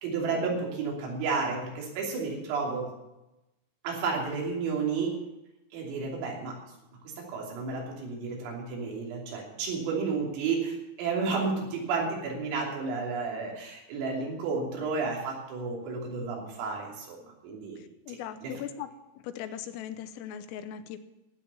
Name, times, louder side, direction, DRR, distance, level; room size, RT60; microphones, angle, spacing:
voice 1, 0.0-2.9 3.8-5.2 5.7-6.6 7.3-17.8 18.4-18.5, right 4 dB, 90° right, -2 dB, 5.7 m, -31 dB
voice 2, 17.8-18.9 19.2-21.0, left 10 dB, 85° left, 10 dB, 3.5 m, -39 dB
12.0 x 9.8 x 7.1 m, 0.95 s
omnidirectional pair, 5.8 m